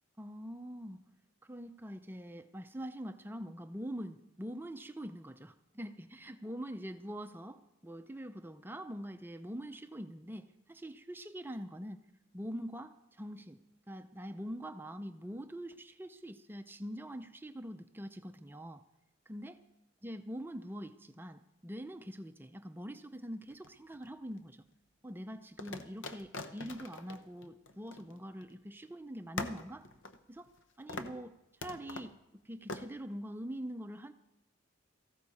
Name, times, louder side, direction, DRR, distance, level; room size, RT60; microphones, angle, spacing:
voice 1, 0.2-1.1 1.4-12.1 12.3-13.6 13.9-18.8 19.3-19.5 20.0-24.6 25.0-29.9 30.3-30.5 30.8-31.3 31.6-34.1, equal, 10° right, 9 dB, 0.5 m, -44 dB
sound 1, 23.5-24.4 25.6-28.5 28.8-28.9 29.4-30.6 30.9-31.2 31.6-32.1 32.7-32.9, left 3 dB, 70° left, 0.9 m, -44 dB
17.5 x 15.0 x 4.2 m, 0.90 s
head